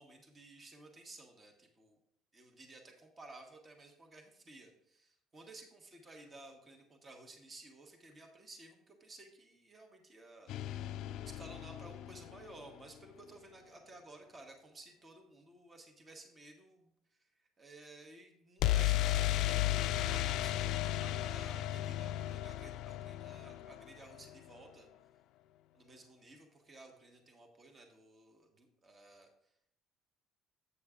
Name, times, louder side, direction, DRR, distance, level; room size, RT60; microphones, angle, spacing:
voice 1, 0.0-2.0 2.3-10.5 11.2-16.9 17.2-17.3 17.6-19.7 20.1-24.9 25.7-29.3, right 2 dB, 25° right, 3 dB, 1.2 m, -55 dB
sound 1, 10.5-12.5 18.6-24.4, left 14 dB, 65° left, 0.3 m, -34 dB
8.1 x 6.3 x 3.6 m, 0.72 s
cardioid pair, 125°, 0 cm